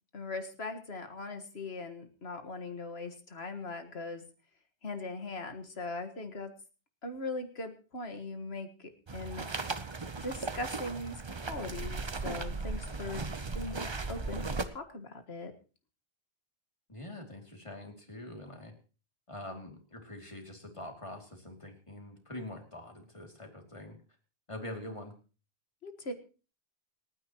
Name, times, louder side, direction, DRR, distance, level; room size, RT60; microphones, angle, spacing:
voice 1, 0.1-4.2 4.8-6.5 7.0-9.5 10.2-13.2 13.5-15.5 25.8-26.1, left 2 dB, 70° left, 7 dB, 1.9 m, -40 dB
sound 1, 9.1-14.6, right 3 dB, 30° right, 0.8 m, -37 dB
voice 2, 16.9-18.7 19.3-24.0 24.5-25.1, left 1 dB, 30° left, 2 dB, 2.8 m, -44 dB
29.0 x 9.6 x 3.0 m, 0.36 s
omnidirectional pair, 1.1 m